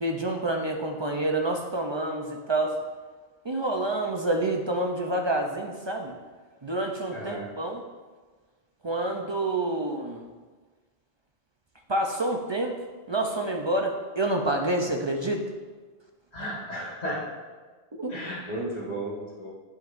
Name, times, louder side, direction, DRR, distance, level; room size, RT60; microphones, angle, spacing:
voice 1, 0.0-2.8 3.4-6.1 6.6-7.8 8.8-10.3 11.9-12.8 13.1-15.4 18.0-18.1, right 2 dB, 35° right, 2 dB, 0.5 m, -28 dB
voice 2, 7.1-7.5 16.3-17.2 18.1-19.5, right 1 dB, 40° left, -8 dB, 1.6 m, -34 dB
10.5 x 5.3 x 2.6 m, 1.4 s
omnidirectional pair, 1.1 m